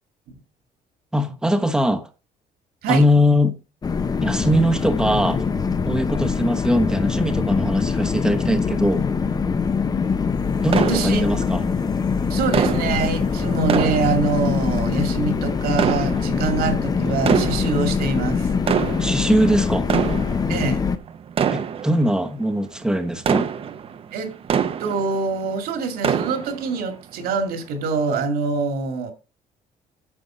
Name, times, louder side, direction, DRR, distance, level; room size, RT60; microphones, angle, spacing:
voice 1, 1.1-2.1 2.9-3.6 4.2-5.5 5.9-9.1 10.6-11.6 19.0-19.9 21.5-23.5, equal, 5° right, 1.0 m, -21 dB
sound 1, 3.8-21.0, left 5 dB, 25° left, 0.7 m, -23 dB
sound 2, 10.7-11.8 12.5-14.9 15.7-16.7 17.2-18.1 18.5-25.5 25.8-26.9 27.3-27.4 28.0-28.1, right 7 dB, 35° right, 0.8 m, -26 dB
voice 2, 10.9-11.2 12.3-18.5 20.5-20.8 24.1-24.3 24.8-29.1, right 4 dB, 75° right, 2.4 m, -25 dB
9.7 x 6.9 x 5.0 m
cardioid pair, 150°, 16 cm